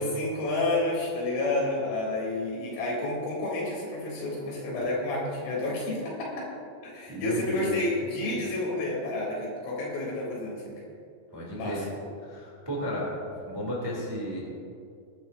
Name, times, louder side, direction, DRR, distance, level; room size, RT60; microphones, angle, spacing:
voice 1, 0.0-6.5 6.8-10.8 11.5-11.9, left 2 dB, 90° left, -5 dB, 6.3 m, -30 dB
voice 2, 7.1-7.8 11.3-11.8 12.2-13.1 13.5-14.4, equal, 10° right, -4 dB, 1.6 m, -33 dB
20.5 x 12.0 x 2.8 m, 2.4 s
omnidirectional pair, 5.7 m